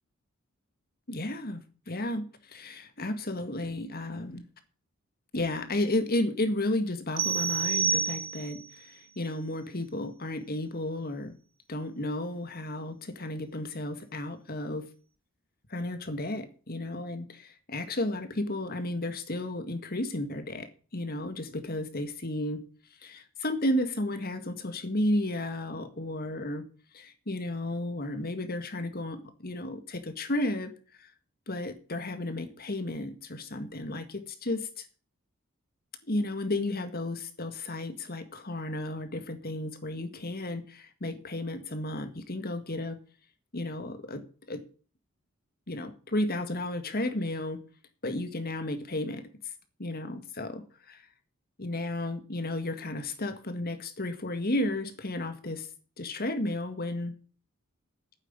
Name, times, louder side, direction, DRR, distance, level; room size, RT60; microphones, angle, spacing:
voice 1, 1.1-4.4 5.3-11.4 11.7-14.8 15.7-22.6 23.0-26.6 26.9-30.7 31.0-31.1 31.5-34.6 36.1-43.0 43.5-44.2 44.5-44.6 45.7-47.6 48.0-49.3 49.8-51.0 51.6-55.7 56.0-57.1, left 1 dB, 45° left, 1.8 m, -33 dB
sound 1, 7.2-8.7, right 6 dB, 60° right, 1.7 m, -28 dB
9.4 x 8.2 x 9.5 m
head